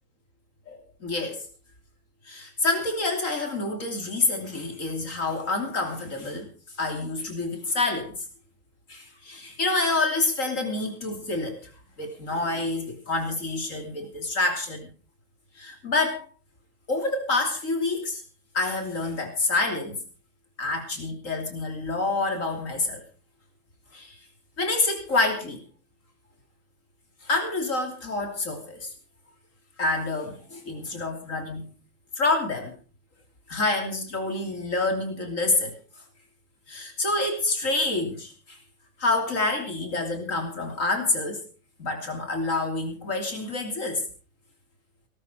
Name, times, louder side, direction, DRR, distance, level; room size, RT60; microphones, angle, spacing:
voice 1, 0.7-1.4 2.3-6.5 6.8-8.1 8.9-11.6 12.0-14.9 15.6-16.2 16.9-18.2 18.5-20.0 20.6-23.0 23.9-24.2 24.6-25.6 27.2-28.9 29.8-31.7 32.2-32.8 33.5-35.8 36.7-38.6 39.0-41.4 41.8-44.0, left 2 dB, 85° left, 4 dB, 3.6 m, -27 dB
18.5 x 12.5 x 4.5 m, 0.36 s
omnidirectional pair, 1.3 m